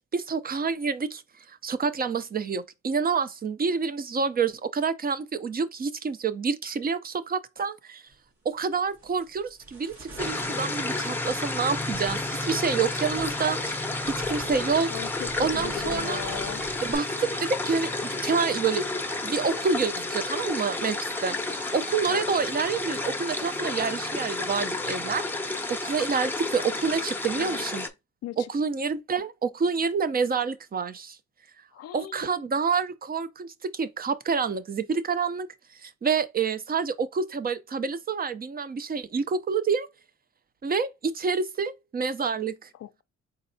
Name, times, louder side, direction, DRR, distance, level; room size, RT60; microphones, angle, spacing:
voice 1, 0.1-1.2 1.5-8.0 8.4-14.9 15.4-16.2 16.8-18.9 19.2-25.2 25.7-27.8 28.4-31.2 31.9-35.5 35.8-39.9 40.6-42.7, right 5 dB, 30° right, 0.6 m, -28 dB
sound 1, 8.1-8.3 8.7-17.0, right 1 dB, 65° right, 2.3 m, -45 dB
sound 2, 10.2-27.9, left 2 dB, 5° left, 0.7 m, -31 dB
voice 2, 14.9-16.6 22.1-22.3 27.3-27.6 28.2-28.5 31.7-32.5 42.7-43.0, left 12 dB, 55° left, 0.4 m, -38 dB
4.1 x 4.0 x 2.7 m
cardioid pair, 90°, 30 cm